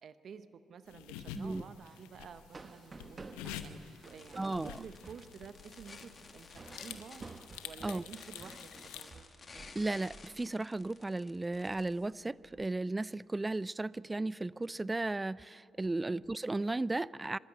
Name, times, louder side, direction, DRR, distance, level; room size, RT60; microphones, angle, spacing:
voice 1, 0.0-3.3 3.6-7.3 7.6-9.7 16.0-16.2, right 6 dB, 60° right, 0.9 m, -51 dB
sound 1, 0.9-9.0, left 10 dB, 90° left, 0.8 m, -49 dB
sound 2, 1.7-9.8 10.1-10.4 10.7-11.1 11.5-12.7, right 3 dB, 35° right, 1.0 m, -53 dB
sound 3, 4.0-11.9, left 4 dB, 40° left, 1.9 m, -54 dB
voice 2, 4.4-4.7 7.8-8.0 9.5-17.4, right 2 dB, 20° right, 0.4 m, -35 dB
24.5 x 13.0 x 8.4 m
supercardioid pair, 55°, 0 cm